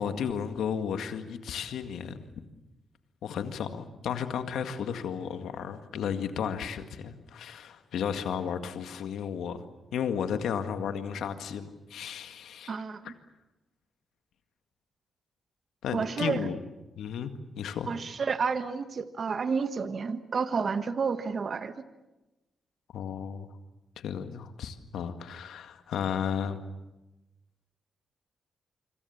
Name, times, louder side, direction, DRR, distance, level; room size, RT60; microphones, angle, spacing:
voice 1, 0.0-2.3 3.2-9.6 9.9-12.8 13.0-13.1 15.8-16.6 17.0-17.9 22.9-23.5 24.0-26.6, left 7 dB, 80° left, 8 dB, 2.0 m, -33 dB
voice 2, 12.7-13.1 15.9-16.4 17.9-21.7, right 5 dB, 55° right, 10 dB, 1.4 m, -30 dB
25.5 x 25.5 x 7.2 m, 1.0 s
supercardioid pair, 55°, 0 cm